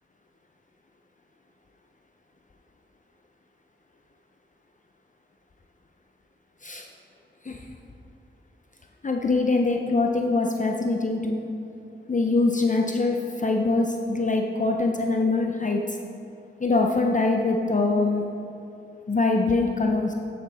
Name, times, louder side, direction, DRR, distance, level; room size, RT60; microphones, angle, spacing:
voice 1, 9.0-11.5 12.1-16.0 16.6-18.2 19.1-20.1, left 3 dB, 40° left, 2 dB, 0.6 m, -23 dB
9.9 x 6.9 x 4.2 m, 2.8 s
wide cardioid pair, 65°, 20 cm